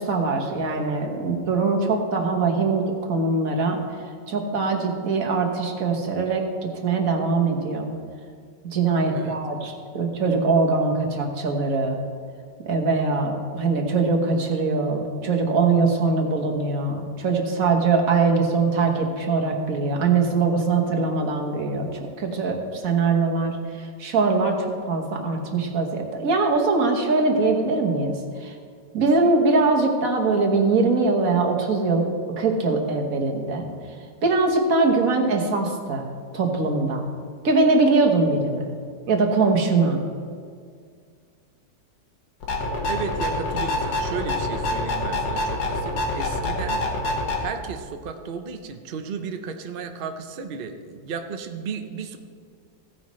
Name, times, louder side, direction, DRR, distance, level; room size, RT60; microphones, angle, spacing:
voice 1, 0.0-3.8 4.3-6.4 6.8-7.9 8.7-12.0 12.7-21.9 22.2-28.5 28.9-32.1 32.4-33.7 34.2-36.0 36.3-37.1 37.4-38.7 39.1-40.0, right 3 dB, 55° right, 2 dB, 1.6 m, -22 dB
voice 2, 9.1-9.7 42.9-46.8 47.4-52.2, right 5 dB, 70° right, 6 dB, 0.5 m, -34 dB
sound 1, 42.4-47.4, left 2 dB, 85° left, 2.1 m, -26 dB
15.5 x 9.6 x 3.1 m, 2.1 s
omnidirectional pair, 1.9 m